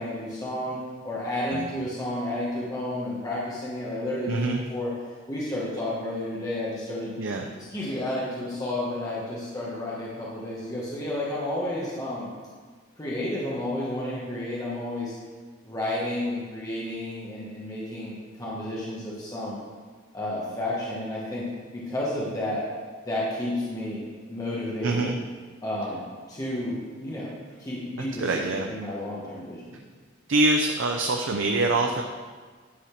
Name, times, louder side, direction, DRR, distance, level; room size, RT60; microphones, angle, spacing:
voice 1, 0.0-4.4 4.7-4.9 5.3-7.1 7.6-12.3 13.0-15.1 15.6-19.6 20.1-21.4 21.7-22.6 23.0-24.0 24.3-25.1 25.6-26.0 26.3-27.3 27.6-29.8, left 1 dB, 20° left, -7 dB, 1.3 m, -31 dB
voice 2, 4.3-4.6 7.2-7.5 24.8-25.2 28.2-28.7 30.3-32.0, right 2 dB, 75° right, 2 dB, 0.6 m, -24 dB
9.9 x 4.2 x 5.8 m, 1.5 s
head